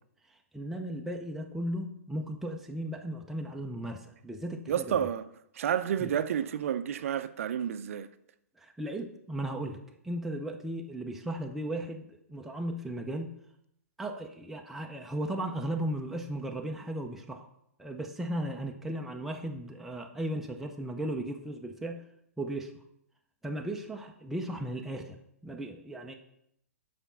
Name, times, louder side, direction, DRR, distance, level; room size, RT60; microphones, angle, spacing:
voice 1, 0.3-5.1 6.0-6.1 8.6-9.8 10.0-13.3 14.0-17.5 17.8-22.0 22.4-22.7 23.4-25.2 25.4-26.1, right 1 dB, 5° right, 0.6 m, -36 dB
voice 2, 4.7-5.3 5.6-8.1, right 9 dB, 60° right, 0.6 m, -30 dB
6.9 x 5.0 x 5.6 m
figure-of-eight pair, 120°, 9 cm